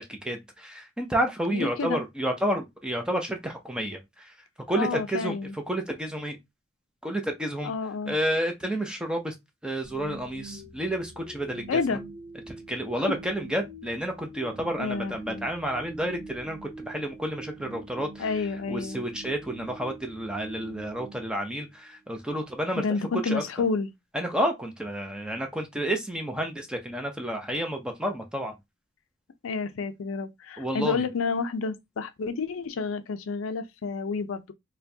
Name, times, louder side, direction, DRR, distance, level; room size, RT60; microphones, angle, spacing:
voice 1, 0.0-4.2 4.7-5.4 5.7-6.4 7.0-7.7 8.1-9.3 9.6-12.0 12.5-18.2 18.7-22.8 23.2-23.4 24.1-28.5 30.6-31.0, right 1 dB, 5° right, 0.6 m, -30 dB
voice 2, 1.5-2.0 4.8-5.5 7.6-8.2 11.7-12.0 13.0-13.1 14.8-15.5 18.2-19.0 22.8-23.9 29.4-34.5, left 4 dB, 80° left, 0.4 m, -30 dB
sound 1, 9.8-22.0, right 2 dB, 35° right, 1.9 m, -44 dB
4.3 x 2.2 x 2.7 m
head